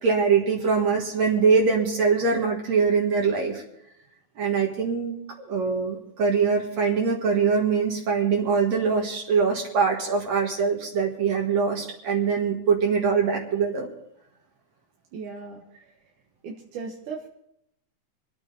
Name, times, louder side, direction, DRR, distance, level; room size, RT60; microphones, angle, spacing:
voice 1, 0.0-3.6 4.4-13.9, right 5 dB, 65° right, 0 dB, 2.9 m, -23 dB
voice 2, 15.1-15.9 16.4-17.3, right 5 dB, 90° right, -1 dB, 2.9 m, -37 dB
26.5 x 9.1 x 4.1 m, 0.78 s
omnidirectional pair, 3.4 m